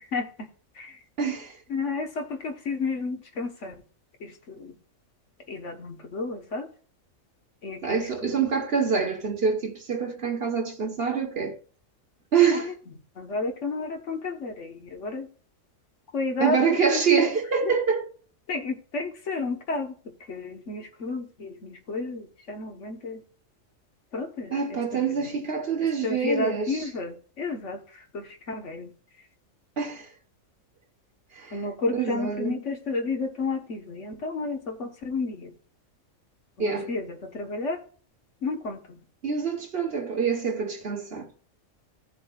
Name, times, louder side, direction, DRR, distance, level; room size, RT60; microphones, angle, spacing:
voice 1, 1.2-1.6 7.8-11.6 12.3-12.7 16.4-18.0 24.5-26.9 29.8-30.1 31.3-31.6 31.9-32.6 36.6-36.9 39.2-41.3, right 6 dB, 50° right, 1.4 m, -26 dB
voice 2, 1.7-3.5 5.6-6.6 7.6-7.8 13.2-14.7 15.0-15.2 16.1-16.5 18.5-19.9 20.3-21.2 21.9-22.2 22.5-23.2 24.1-24.3 26.0-27.1 27.4-27.8 28.5-28.8 31.5-34.6 35.0-35.3 36.9-37.0 37.4-37.8 38.4-38.8, left 3 dB, 65° left, 1.5 m, -30 dB
16.0 x 6.9 x 2.4 m
omnidirectional pair, 1.4 m